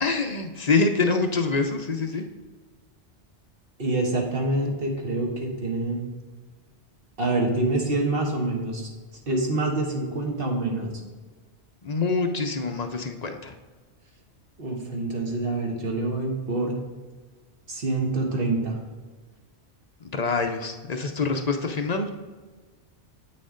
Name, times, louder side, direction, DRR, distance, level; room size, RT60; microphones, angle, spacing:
voice 1, 0.0-2.2 11.8-13.5 20.0-22.1, left 4 dB, 45° left, 5 dB, 0.6 m, -25 dB
voice 2, 3.8-6.1 7.2-8.9 9.3-10.9 14.6-16.8 17.7-18.8, right 2 dB, 55° right, 0 dB, 1.5 m, -26 dB
8.3 x 6.4 x 3.8 m, 1.4 s
omnidirectional pair, 1.2 m